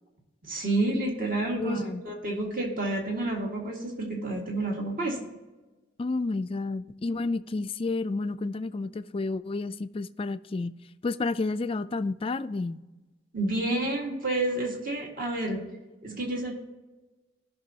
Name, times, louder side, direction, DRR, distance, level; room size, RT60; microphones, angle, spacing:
voice 1, 0.4-5.2 13.3-15.6 16.0-16.5, right 2 dB, 50° right, 0 dB, 2.0 m, -29 dB
voice 2, 1.6-2.0 6.0-10.7 11.0-12.8, left 3 dB, 30° left, 12 dB, 0.3 m, -30 dB
16.0 x 6.1 x 2.8 m, 1.2 s
head